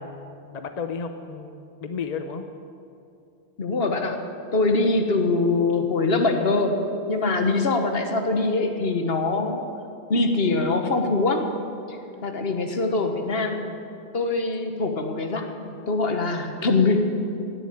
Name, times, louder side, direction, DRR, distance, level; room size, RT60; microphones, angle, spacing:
voice 1, 0.0-2.5, left 5 dB, 45° left, 7 dB, 0.8 m, -33 dB
voice 2, 3.6-4.2 4.5-6.8 7.1-9.6 10.1-11.5 11.9-12.0 12.2-13.7 14.1-17.2, left 3 dB, 70° left, 5 dB, 1.5 m, -23 dB
18.0 x 7.0 x 8.8 m, 2.6 s
omnidirectional pair, 1.0 m